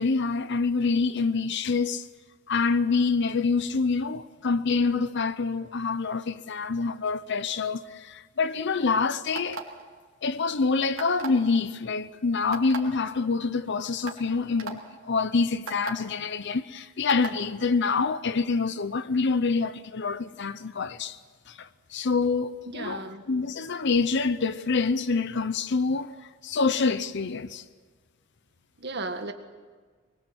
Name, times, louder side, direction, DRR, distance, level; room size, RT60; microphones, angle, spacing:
voice 1, 0.0-2.1 2.5-9.6 10.2-21.2 21.5-27.6, left 4 dB, 60° left, 0.7 m, -26 dB
sound 1, 9.3-9.8 11.0-11.4 12.5-12.8 13.5-13.6 14.1-14.2 14.6-14.7 15.7-15.9 17.1-17.3, right 5 dB, 75° right, 3.1 m, -35 dB
voice 2, 22.6-23.2 28.8-29.3, right 2 dB, 55° right, 1.9 m, -35 dB
24.0 x 21.5 x 8.0 m
head